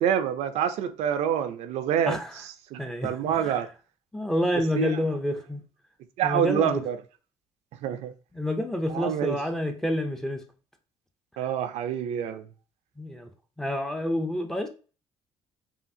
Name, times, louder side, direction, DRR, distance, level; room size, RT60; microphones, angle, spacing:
voice 1, 0.0-2.2 2.7-3.7 4.7-5.0 6.2-7.0 7.8-8.1 8.9-9.4 11.4-12.5, right 9 dB, 70° right, 0.5 m, -26 dB
voice 2, 2.1-2.4 2.8-3.6 4.1-5.6 6.2-6.8 8.3-10.4 13.0-13.3 13.6-14.7, left 1 dB, 5° left, 0.4 m, -28 dB
5.6 x 2.4 x 2.6 m
cardioid pair, 180°, 12 cm